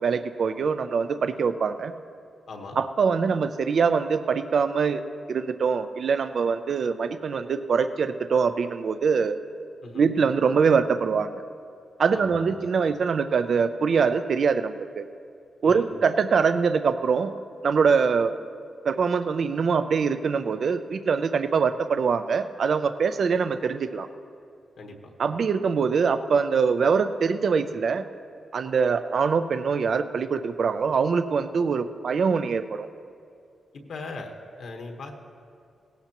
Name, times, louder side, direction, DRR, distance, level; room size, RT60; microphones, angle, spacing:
voice 1, 0.0-1.9 2.8-5.0 5.3-9.4 9.9-11.4 12.0-15.0 15.6-17.3 17.6-18.3 18.8-24.1 25.2-28.0 28.5-32.9, right 5 dB, 50° right, 10 dB, 0.4 m, -23 dB
voice 2, 2.5-2.8 9.8-10.0 12.1-12.5 15.6-15.9 24.8-25.1 33.7-35.1, left 3 dB, 65° left, 2 dB, 1.2 m, -39 dB
18.0 x 15.0 x 3.0 m, 2.4 s
wide cardioid pair, 160°, 0 cm